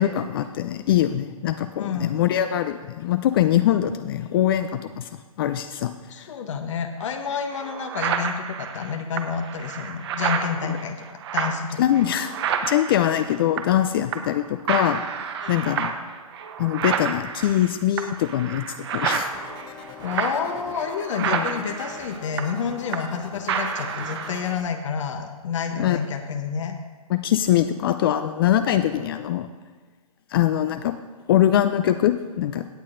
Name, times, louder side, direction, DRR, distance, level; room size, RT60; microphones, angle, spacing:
voice 1, 0.0-5.1 5.4-6.3 10.6-10.7 11.8-12.3 12.6-15.0 15.5-15.9 16.6-19.5 21.3-21.5 25.8-26.0 27.1-29.5 30.3-30.9 31.3-32.7, left 11 dB, 40° left, 9 dB, 0.4 m, -22 dB
voice 2, 1.8-2.3 6.1-11.8 15.4-15.7 20.0-26.8, left 6 dB, 55° left, 5 dB, 0.9 m, -29 dB
sound 1, 7.0-7.1 7.5-13.9 14.1-14.4 14.7-23.2 23.5-24.5, right 7 dB, 45° right, 0.9 m, -30 dB
sound 2, 19.3-24.7, left 6 dB, 25° left, 0.9 m, -42 dB
17.0 x 8.2 x 2.6 m, 1.3 s
figure-of-eight pair, 125°, 19 cm